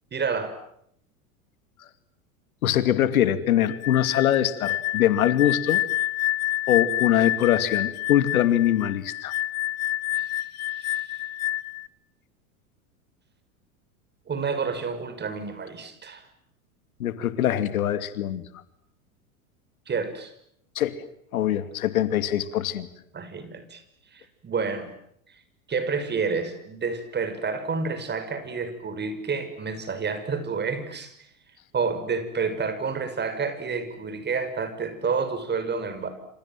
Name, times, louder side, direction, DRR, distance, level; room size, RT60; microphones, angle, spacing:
voice 1, 0.1-0.6 10.1-10.3 10.7-11.2 14.3-16.2 19.9-20.3 23.1-23.8 24.1-24.9 25.7-31.1 31.7-36.1, right 5 dB, 25° right, 11 dB, 6.2 m, -29 dB
voice 2, 2.6-5.8 6.7-9.3 17.0-18.4 20.8-21.0 21.3-22.9, left 11 dB, 80° left, 12 dB, 2.7 m, -23 dB
sound 1, 3.6-11.9, left 14 dB, 35° left, 1.2 m, -28 dB
28.5 x 27.5 x 7.6 m, 0.71 s
hypercardioid pair, 105°, 42 cm